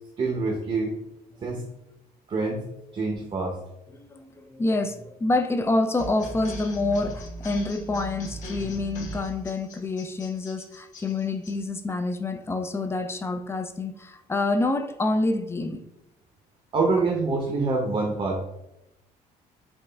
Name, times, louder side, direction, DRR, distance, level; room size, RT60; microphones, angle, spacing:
voice 1, 0.2-1.0 1.4-1.6 2.3-2.6 2.9-3.6 16.7-18.5, right 3 dB, 35° right, 2 dB, 0.7 m, -26 dB
voice 2, 3.9-15.8, left 2 dB, 15° left, 8 dB, 0.4 m, -27 dB
sound 1, 6.0-11.5, right 1 dB, 50° left, 1.4 m, -39 dB
4.3 x 2.4 x 3.3 m, 0.88 s
cardioid pair, 110°, 17 cm